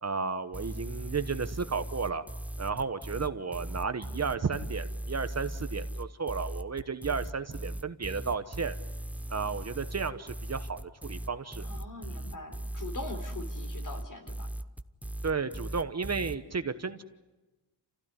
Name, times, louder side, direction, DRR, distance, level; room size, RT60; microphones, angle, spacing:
voice 1, 0.0-2.2 2.6-8.8 9.3-11.7 15.2-17.0, right 5 dB, 35° right, 10 dB, 1.1 m, -33 dB
sound 1, 0.5-16.4, right 1 dB, 5° right, 0.7 m, -38 dB
voice 2, 11.6-14.5, left 2 dB, 45° left, 6 dB, 3.9 m, -42 dB
28.5 x 16.0 x 9.8 m, 1.1 s
wide cardioid pair, 120°, 42 cm